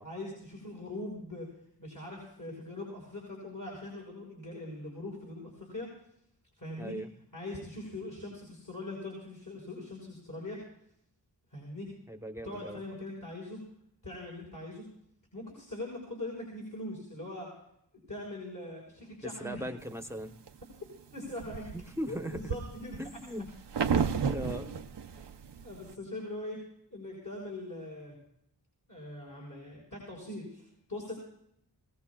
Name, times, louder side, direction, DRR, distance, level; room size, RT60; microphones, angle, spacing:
voice 1, 0.0-1.5 1.8-5.9 6.6-6.9 7.3-10.6 11.5-11.9 12.4-13.6 14.0-14.8 15.3-17.5 18.1-19.7 21.1-21.7 22.1-23.0 24.4-24.7 25.6-26.6 26.9-28.2 28.9-31.1, left 1 dB, 50° left, -3 dB, 6.0 m, -41 dB
voice 2, 6.8-7.1 12.1-12.8 19.2-20.3 21.7-22.5 23.0-23.5 24.3-24.7, equal, 5° right, 6 dB, 1.1 m, -38 dB
sound 1, 19.9-20.6 21.1-25.9, right 6 dB, 90° right, 0.8 m, -33 dB
22.5 x 17.5 x 2.4 m, 0.74 s
wide cardioid pair, 75°, 41 cm